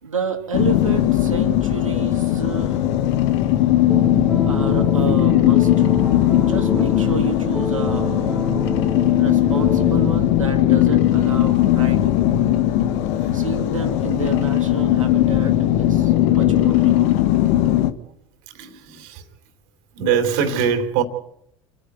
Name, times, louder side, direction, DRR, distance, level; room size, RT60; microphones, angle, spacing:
voice 1, 0.0-2.8 4.5-5.9 6.4-8.3 9.2-12.2 13.1-17.3, right 5 dB, 85° right, 2.9 m, -30 dB
sound 1, 0.5-17.9, left 13 dB, 65° left, 1.5 m, -18 dB
sound 2, 3.9-10.1, equal, 5° right, 1.2 m, -28 dB
voice 2, 18.5-19.2 19.9-21.0, right 7 dB, 60° right, 3.3 m, -22 dB
29.0 x 10.0 x 9.4 m
figure-of-eight pair, 70°, 17 cm